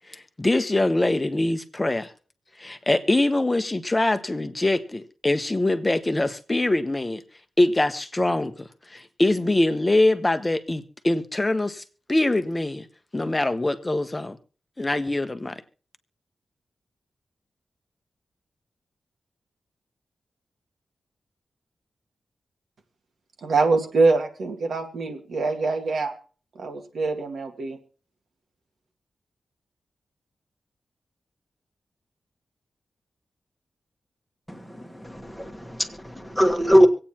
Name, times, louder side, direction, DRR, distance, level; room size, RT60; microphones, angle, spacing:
voice 1, 0.1-2.1 2.6-7.2 7.6-8.5 8.9-11.8 12.1-12.9 13.1-14.4 14.8-15.6, left 2 dB, 15° left, 9 dB, 0.9 m, -23 dB
voice 2, 23.4-26.1 26.6-27.8, right 3 dB, 75° right, 4 dB, 1.9 m, -24 dB
voice 3, 34.5-36.9, equal, ahead, 4 dB, 1.4 m, -21 dB
25.5 x 8.7 x 2.9 m, 0.40 s
wide cardioid pair, 150°, 0 cm